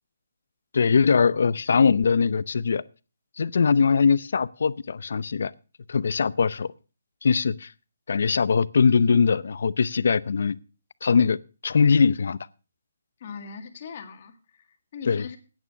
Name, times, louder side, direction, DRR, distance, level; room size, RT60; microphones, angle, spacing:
voice 1, 0.7-2.8 3.4-5.5 5.9-6.7 7.2-7.7 8.1-10.6 11.0-11.4 11.6-12.4 15.1-15.3, left 5 dB, 65° left, 0.6 m, -21 dB
voice 2, 13.2-15.4, left 6 dB, 40° left, 1.9 m, -40 dB
11.0 x 9.3 x 5.7 m
hypercardioid pair, 165°, 0 cm